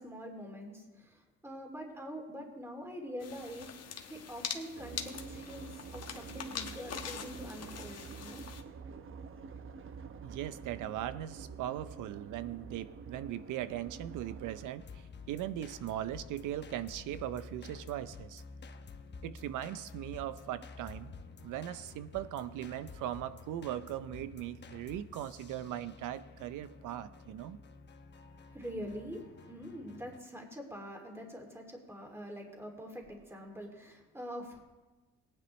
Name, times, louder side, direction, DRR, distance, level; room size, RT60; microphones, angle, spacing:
voice 1, 0.0-3.7 4.1-8.4 28.5-34.6, equal, 10° right, 1 dB, 2.5 m, -44 dB
sound 1, 3.2-8.6, left 7 dB, 55° left, 1.3 m, -43 dB
sound 2, 4.8-14.7, right 5 dB, 45° right, 0.8 m, -48 dB
voice 2, 10.2-18.4 19.2-21.1 21.4-27.6, right 12 dB, 85° right, 14 dB, 0.6 m, -39 dB
sound 3, 14.8-30.2, left 4 dB, 35° left, 1.0 m, -51 dB
18.0 x 10.0 x 3.1 m, 1.2 s
cardioid pair, 90°, 30 cm